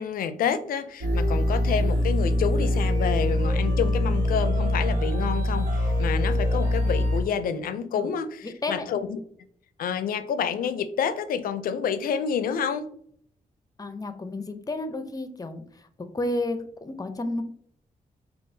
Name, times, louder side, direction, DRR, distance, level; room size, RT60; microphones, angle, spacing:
voice 1, 0.0-9.2 9.8-12.9, left 7 dB, 90° left, 12 dB, 0.4 m, -28 dB
sound 1, 1.0-7.2, left 1 dB, 75° right, 1.2 m, -24 dB
voice 2, 8.4-8.9 13.8-15.6 16.1-17.4, left 2 dB, 25° left, 9 dB, 0.6 m, -31 dB
5.3 x 2.4 x 2.7 m, 0.63 s
cardioid pair, 90°, 14 cm